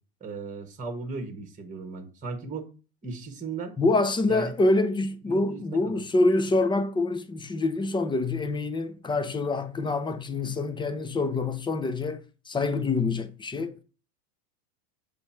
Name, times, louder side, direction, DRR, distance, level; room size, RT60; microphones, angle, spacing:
voice 1, 0.2-2.7 3.0-3.8 4.3-4.5 5.3-6.0, right 4 dB, 15° right, 1.3 m, -36 dB
voice 2, 3.8-13.8, left 2 dB, 10° left, 0.5 m, -26 dB
6.7 x 3.3 x 4.4 m
supercardioid pair, 105°, 46 cm